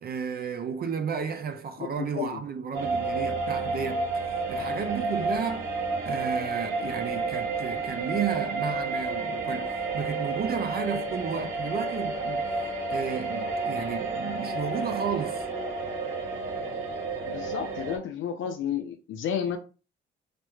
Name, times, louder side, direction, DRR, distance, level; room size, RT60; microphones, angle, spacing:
voice 1, 0.0-5.7 6.0-12.5 12.9-15.5, right 6 dB, 50° right, 0.6 m, -33 dB
sound 1, 2.7-18.0, right 3 dB, 85° right, 2.0 m, -31 dB
voice 2, 17.3-19.6, left 8 dB, 75° left, 0.6 m, -31 dB
5.1 x 2.1 x 3.0 m
cardioid pair, 90°, 20 cm